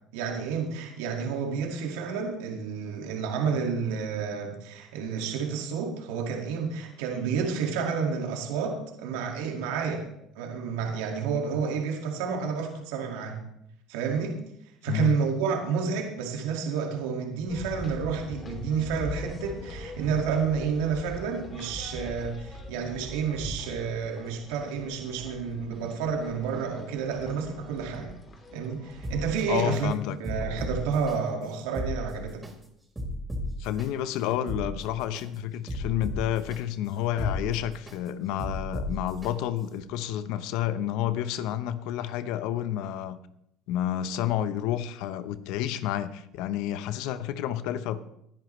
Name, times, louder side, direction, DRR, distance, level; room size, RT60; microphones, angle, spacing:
voice 1, 0.1-10.0 10.4-13.4 13.9-14.4 14.8-28.1 28.5-29.9 30.2-32.4, right 6 dB, 80° right, 2 dB, 2.1 m, -30 dB
sound 1, 17.5-30.0, left 1 dB, 35° left, 2.9 m, -42 dB
sound 2, 29.0-29.8 30.2-31.1 31.6-32.5 33.0-33.9 34.3-35.2 35.7-36.6 37.0-38.0 38.4-39.3 39.8-39.9, left 1 dB, 15° right, 4.6 m, -34 dB
voice 2, 29.5-30.2 33.6-43.2 43.7-48.0, left 11 dB, 75° left, 13 dB, 0.9 m, -30 dB
18.0 x 10.5 x 3.2 m, 0.76 s
supercardioid pair, 80°, 0 cm